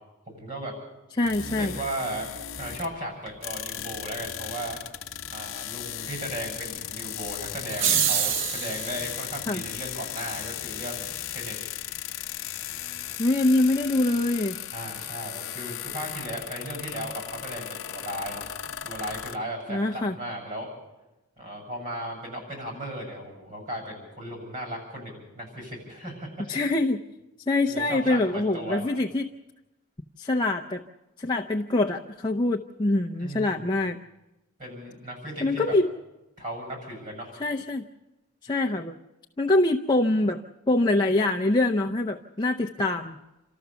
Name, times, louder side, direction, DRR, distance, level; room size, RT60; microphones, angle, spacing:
voice 1, 0.3-0.7 1.4-2.3 2.6-4.8 5.3-11.6 14.7-20.7 21.4-26.4 27.7-28.9 33.2-33.8 34.6-35.7 36.4-37.3, right 1 dB, 40° right, 1 dB, 7.7 m, -36 dB
sound 1, 1.2-3.0 3.3-19.4, left 11 dB, 65° left, 0.9 m, -36 dB
voice 2, 1.2-1.7 9.5-9.6 13.2-14.6 19.7-20.2 26.5-27.0 27.5-29.3 30.2-30.8 31.2-34.0 35.4-35.9 37.4-37.8 38.4-38.9 39.4-40.4 40.7-43.2, left 2 dB, 20° left, 2 dB, 0.6 m, -24 dB
sound 2, 7.7-9.0, right 8 dB, 55° right, 0.7 m, -25 dB
28.0 x 13.5 x 6.9 m, 1.0 s
head